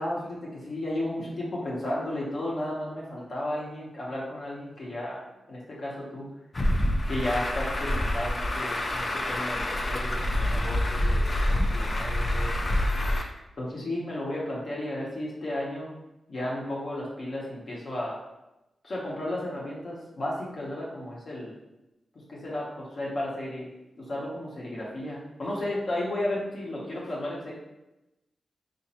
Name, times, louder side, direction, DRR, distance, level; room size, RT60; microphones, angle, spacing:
voice 1, 0.0-5.2 5.5-6.3 7.1-12.6 13.6-15.9 16.3-18.2 18.8-21.5 22.3-23.7 24.0-27.5, left 1 dB, 50° left, -5 dB, 0.8 m, -33 dB
Truck, 6.5-13.2, left 1 dB, 30° left, 0.3 m, -27 dB
3.9 x 2.5 x 2.8 m, 0.95 s
wide cardioid pair, 155°, 0 cm